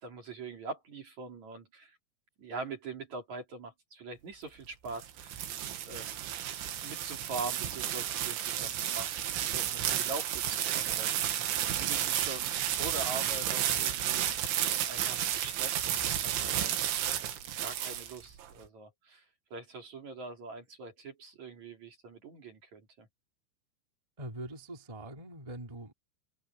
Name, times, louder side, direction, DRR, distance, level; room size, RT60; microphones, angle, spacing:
voice 1, 0.0-2.0 2.4-5.4 5.8-6.2 6.8-9.1 9.4-11.2 11.6-12.5 12.7-14.5 14.9-16.8 17.6-19.3 19.5-23.1, right 3 dB, 45° right, 4.1 m, -43 dB
sound 1, 4.6-18.5, right 11 dB, 90° right, 4.4 m, -32 dB
voice 2, 24.2-25.9, right 1 dB, 10° right, 2.7 m, -43 dB
omnidirectional pair, 5.2 m